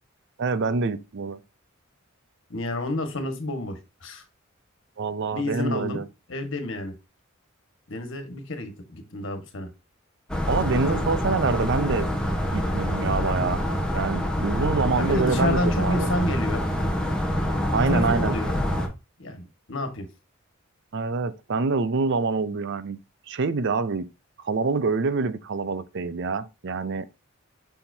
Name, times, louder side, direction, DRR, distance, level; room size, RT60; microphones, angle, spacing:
voice 1, 0.4-1.4 5.0-6.1 10.5-12.1 12.5-13.6 13.9-16.1 17.7-18.4 20.9-23.0 23.3-24.1 24.4-27.1, right 4 dB, 60° right, 0.5 m, -26 dB
voice 2, 2.5-4.2 5.3-6.0 6.3-6.9 7.9-9.7 10.9-11.0 14.9-16.6 17.9-18.6 19.2-20.1, left 1 dB, 65° left, 1.6 m, -29 dB
sound 1, 10.3-18.9, equal, 5° left, 1.2 m, -26 dB
7.0 x 5.7 x 2.7 m
head